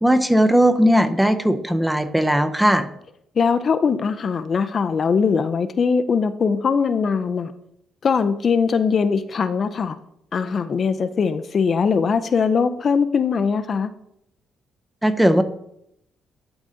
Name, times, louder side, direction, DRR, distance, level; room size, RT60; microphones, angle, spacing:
voice 1, 0.0-2.9 15.0-15.4, equal, 5° right, 9 dB, 0.6 m, -17 dB
voice 2, 3.4-7.5 8.0-10.0 10.3-13.9, left 5 dB, 45° left, 10 dB, 0.4 m, -21 dB
11.5 x 3.9 x 3.7 m, 0.76 s
cardioid pair, 90°, 0 cm